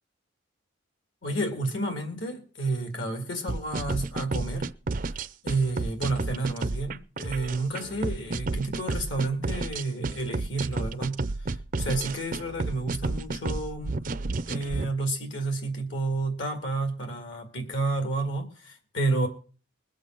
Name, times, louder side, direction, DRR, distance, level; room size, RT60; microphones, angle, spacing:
voice 1, 1.2-4.7 5.1-19.3, right 2 dB, 65° left, 2.1 m, -31 dB
sound 1, 3.5-14.9, right 3 dB, 40° right, 0.5 m, -31 dB
21.5 x 7.6 x 4.5 m
head